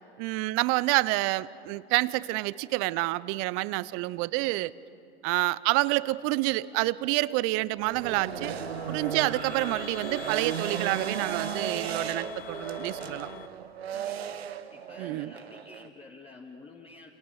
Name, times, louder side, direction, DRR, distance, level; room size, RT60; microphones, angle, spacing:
voice 1, 0.2-4.7 5.2-8.6 8.9-13.3 15.0-15.3, right 20 dB, 45° right, 19 dB, 0.7 m, -28 dB
sound 1, 7.7-13.5, left 7 dB, 65° left, 2.0 m, -43 dB
sound 2, 7.8-15.9, right 9 dB, 75° right, 1.0 m, -36 dB
voice 2, 13.9-14.4 14.7-17.1, left 3 dB, 20° left, 1 dB, 1.8 m, -50 dB
30.0 x 27.5 x 6.4 m, 2.7 s
hypercardioid pair, 90°, 31 cm